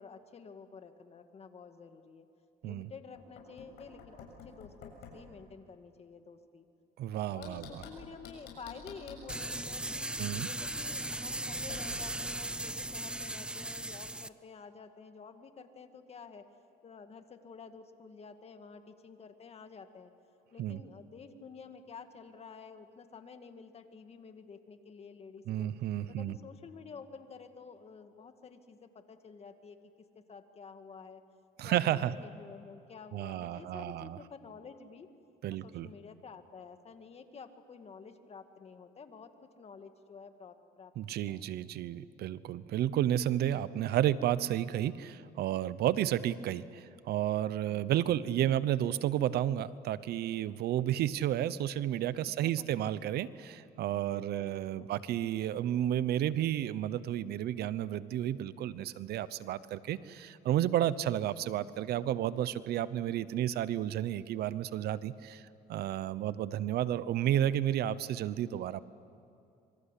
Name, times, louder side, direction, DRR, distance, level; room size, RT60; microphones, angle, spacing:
voice 1, 0.0-2.3 2.6-6.7 7.3-10.1 10.4-16.4 16.8-20.1 20.5-25.7 26.1-29.8 30.1-31.2 31.6-35.1 35.6-41.4 47.7-47.9 52.3-52.7 54.0-55.0, left 5 dB, 35° left, 8 dB, 2.0 m, -50 dB
Knock, 3.1-5.3 7.4-9.5 11.7-12.2, left 5 dB, 75° left, 7.0 m, -49 dB
voice 2, 7.0-7.8 10.2-10.5 20.6-20.8 25.5-26.4 31.6-32.1 33.1-34.2 35.4-35.9 41.0-68.8, right 12 dB, 70° right, 16 dB, 0.9 m, -32 dB
sound 1, 9.3-14.3, right 1 dB, 5° right, 0.7 m, -37 dB
26.0 x 25.0 x 8.4 m, 2.7 s
cardioid pair, 110°, 17 cm